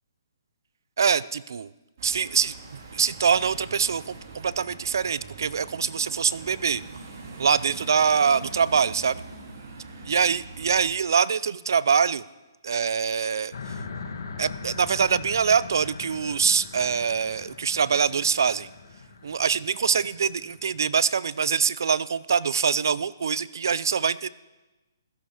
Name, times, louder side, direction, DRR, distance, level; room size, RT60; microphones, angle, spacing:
voice 1, 1.0-1.7 2.0-6.8 7.4-9.2 10.1-12.3 12.6-13.6 14.4-18.7 19.2-24.3, right 6 dB, 65° right, 19 dB, 0.5 m, -24 dB
sound 1, 2.0-10.9, right 3 dB, 45° right, 3.3 m, -43 dB
sound 2, 13.5-21.0, left 4 dB, 65° left, 2.1 m, -41 dB
15.5 x 14.0 x 5.0 m, 1.1 s
hypercardioid pair, 170°, 2 cm